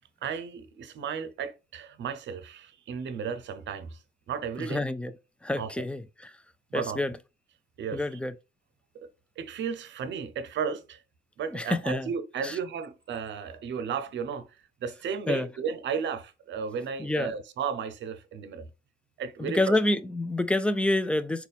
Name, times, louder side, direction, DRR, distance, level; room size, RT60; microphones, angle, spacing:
voice 1, 0.2-4.8 5.6-5.7 6.7-7.0 7.8-8.0 8.9-9.1 9.4-11.0 11.4-14.5 14.8-18.7 19.2-19.8, right 6 dB, 65° right, 0.7 m, -34 dB
voice 2, 4.6-5.1 5.4-6.3 6.7-7.1 7.9-8.3 11.5-12.1 12.4-12.6 15.3-15.5 17.0-17.3 19.4-21.5, left 1 dB, 5° left, 0.3 m, -28 dB
4.0 x 2.3 x 3.5 m
cardioid pair, 90°, 20 cm